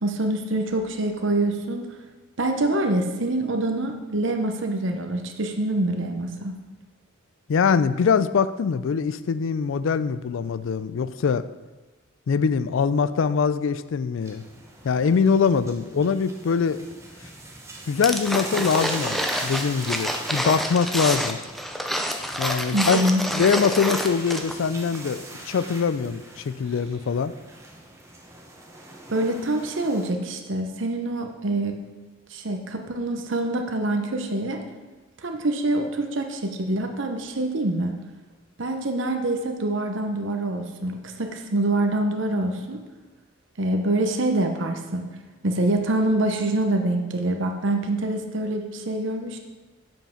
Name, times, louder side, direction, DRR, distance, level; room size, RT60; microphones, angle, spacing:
voice 1, 0.0-1.9 2.4-6.5 22.7-23.2 29.1-31.8 32.3-34.6 35.2-37.9 38.6-42.8 43.6-45.1 45.4-49.4, right 1 dB, 60° right, 5 dB, 0.8 m, -25 dB
voice 2, 7.5-11.4 12.3-14.4 14.8-16.8 17.9-21.4 22.4-23.0 23.3-27.3, left 6 dB, 65° left, 14 dB, 0.4 m, -23 dB
sound 1, 14.2-30.1, right 2 dB, 15° right, 1.1 m, -41 dB
sound 2, 18.0-24.7 24.9-25.0, equal, ahead, 0.5 m, -28 dB
7.4 x 5.5 x 5.8 m, 1.3 s
head